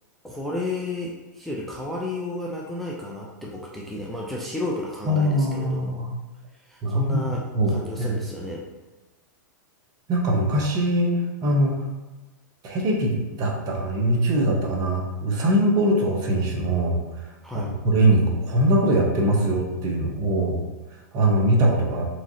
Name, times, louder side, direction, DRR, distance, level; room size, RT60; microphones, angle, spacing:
voice 1, 0.2-6.0 6.7-8.7 17.4-17.7, left 2 dB, ahead, -4 dB, 0.4 m, -32 dB
voice 2, 5.1-6.1 6.8-7.3 7.5-8.2 10.1-11.8 12.6-17.0 17.5-20.6 21.1-22.0, right 1 dB, 35° right, 0 dB, 0.8 m, -22 dB
3.5 x 3.1 x 2.6 m, 1.1 s
hypercardioid pair, 115°, 11 cm